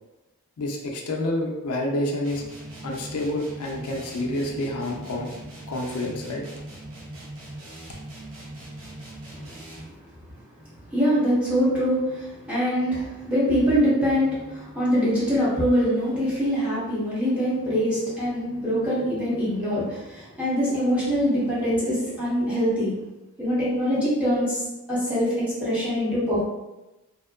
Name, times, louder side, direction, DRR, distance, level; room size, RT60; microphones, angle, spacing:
voice 1, 0.6-2.4 2.8-5.3 5.7-6.4, left 1 dB, 85° left, 1 dB, 0.4 m, -28 dB
sound 1, 2.2-10.0, right 1 dB, 75° right, 0.8 m, -40 dB
voice 2, 10.9-22.9 23.4-24.6 24.9-26.4, equal, 5° right, -10 dB, 0.9 m, -23 dB
2.7 x 2.2 x 2.2 m, 1.0 s
head